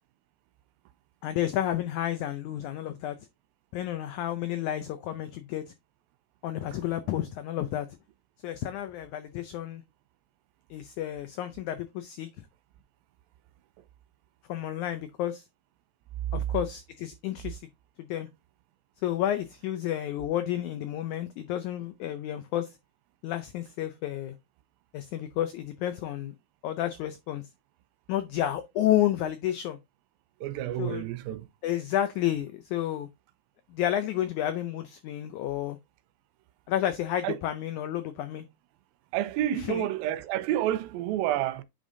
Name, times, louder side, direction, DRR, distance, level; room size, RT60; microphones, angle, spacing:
voice 1, 1.2-3.2 3.7-5.6 6.4-7.9 8.4-9.8 10.7-12.3 14.5-15.4 16.3-17.6 18.0-18.3 19.0-22.7 23.2-24.3 24.9-26.3 26.6-27.4 28.1-29.8 30.8-31.0 31.6-33.1 33.7-35.8 36.7-38.4 39.5-39.9, left 12 dB, 90° left, 1.7 m, -31 dB
voice 2, 30.4-31.4 37.2-37.4 39.1-41.6, right 12 dB, 90° right, 2.4 m, -29 dB
8.7 x 5.1 x 2.6 m
omnidirectional pair, 4.2 m